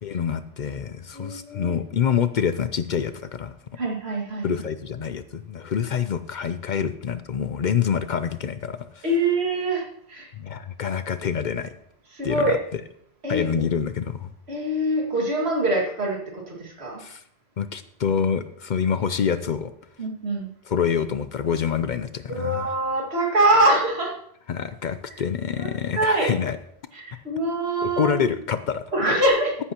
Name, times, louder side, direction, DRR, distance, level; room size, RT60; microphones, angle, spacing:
voice 1, 0.0-3.5 4.4-9.0 10.4-11.7 12.2-12.6 13.3-14.3 17.0-17.2 17.6-19.7 20.7-22.7 24.5-26.6 27.8-28.8, left 7 dB, 55° left, 12 dB, 0.6 m, -26 dB
voice 2, 1.1-1.8 3.8-4.5 9.0-10.3 12.1-12.6 13.2-13.5 14.5-17.0 20.0-20.5 22.3-24.2 25.6-26.3 26.9-28.1 28.9-29.6, right 1 dB, 85° right, -1 dB, 2.3 m, -24 dB
14.0 x 9.9 x 2.9 m, 0.71 s
omnidirectional pair, 1.1 m